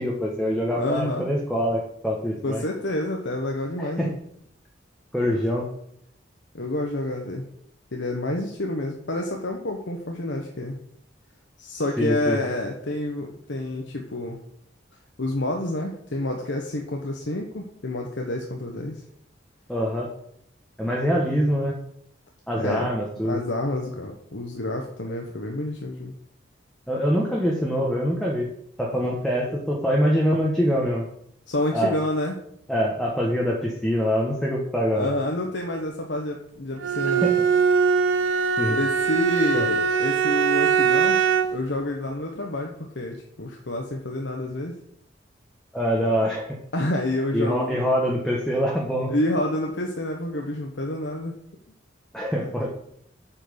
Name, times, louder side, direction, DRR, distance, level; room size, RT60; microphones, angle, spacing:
voice 1, 0.0-2.6 3.8-4.1 5.1-5.7 12.0-12.4 19.7-20.1 20.8-21.8 22.5-23.4 26.9-28.5 28.8-31.1 31.7-32.0 32.7-35.1 37.2-37.4 38.6-38.8 39.5-39.7 45.7-46.6 47.3-49.1 52.1-52.7, equal, ahead, -3 dB, 1.4 m, -24 dB
voice 2, 0.7-1.2 2.4-4.2 5.2-5.4 6.5-7.5 7.9-10.8 11.6-14.4 15.2-19.0 22.6-22.9 23.2-26.1 29.0-29.2 31.5-32.4 34.9-37.2 38.7-41.2 41.5-44.8 46.7-47.8 49.1-51.3 52.4-52.5, left 1 dB, 70° left, 1 dB, 1.2 m, -28 dB
Bowed string instrument, 36.8-41.7, right 6 dB, 90° right, 0.7 m, -21 dB
8.6 x 6.0 x 6.9 m, 0.70 s
head